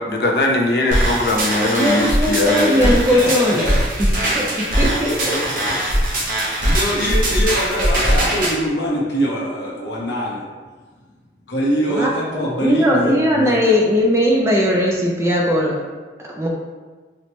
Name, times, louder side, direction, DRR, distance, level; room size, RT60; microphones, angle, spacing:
voice 1, 0.0-3.0, left 2 dB, 55° left, 1 dB, 0.5 m, -20 dB
sound 1, 0.9-8.5, right 1 dB, 50° right, 0.8 m, -20 dB
voice 2, 1.7-4.1 4.3-4.4 4.8-5.4 11.9-15.7 16.3-16.5, equal, 15° right, -2 dB, 0.4 m, -18 dB
voice 3, 3.0-3.7 5.1-5.2 5.6-10.4 11.5-13.5, equal, 80° left, -3 dB, 0.8 m, -24 dB
4.3 x 2.1 x 3.0 m, 1.3 s
head